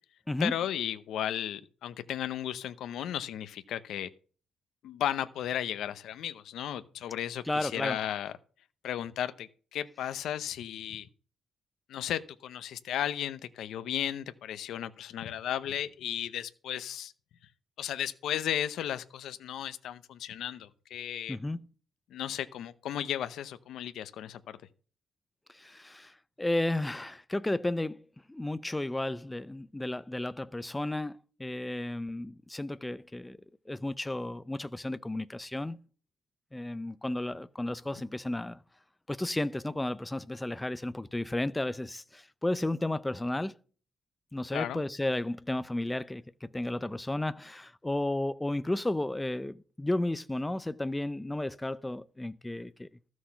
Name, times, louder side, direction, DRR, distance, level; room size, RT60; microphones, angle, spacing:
voice 1, 0.4-4.1 4.8-8.3 8.8-11.1 11.9-17.1 17.8-21.4 22.1-24.6 44.5-44.8, left 10 dB, 75° left, 0.7 m, -35 dB
voice 2, 7.5-8.0 21.3-21.6 25.5-33.4 33.7-35.8 36.5-38.6 39.1-43.5 44.3-52.9, left 1 dB, 10° left, 0.5 m, -33 dB
13.5 x 6.3 x 5.8 m
cardioid pair, 160°, 0 cm